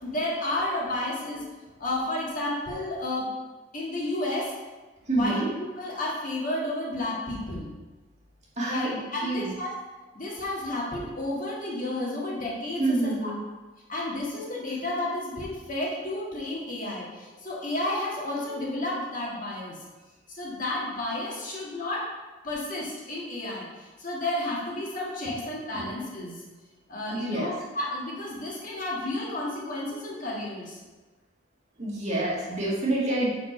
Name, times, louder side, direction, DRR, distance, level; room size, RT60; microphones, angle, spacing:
voice 1, 0.0-1.4 1.8-3.3 3.7-4.5 5.1-7.7 8.6-9.7 10.1-13.3 13.9-19.8 20.3-22.1 22.4-26.4 26.9-30.8, left 1 dB, 40° left, -4 dB, 1.6 m, -31 dB
voice 2, 5.1-5.5 8.6-8.9 9.2-9.5 12.8-13.4 25.7-25.8 27.1-27.5 31.8-33.3, right 2 dB, 35° right, -5 dB, 1.6 m, -27 dB
6.0 x 5.0 x 5.3 m, 1.2 s
head